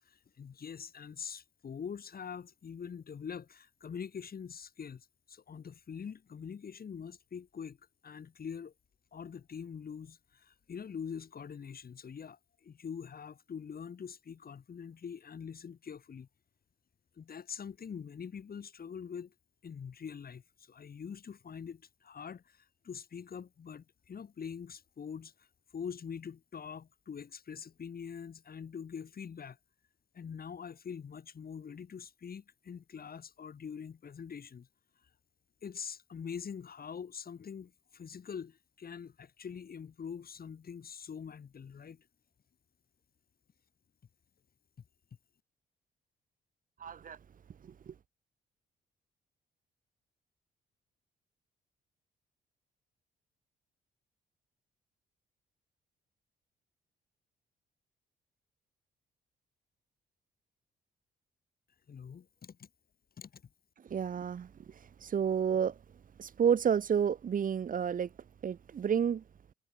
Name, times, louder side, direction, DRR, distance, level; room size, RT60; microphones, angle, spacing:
voice 1, 0.0-7.8 8.0-8.7 9.1-16.3 17.2-19.3 19.6-25.5 25.7-29.6 30.1-34.7 35.6-42.1 61.9-62.7 63.2-63.4, left 7 dB, 50° left, 7.3 m, -44 dB
voice 2, 46.8-47.2 47.6-47.9 63.9-64.5 65.0-65.7 66.2-68.1 68.4-69.2, right 7 dB, 45° right, 0.9 m, -30 dB
supercardioid pair, 60°, 19 cm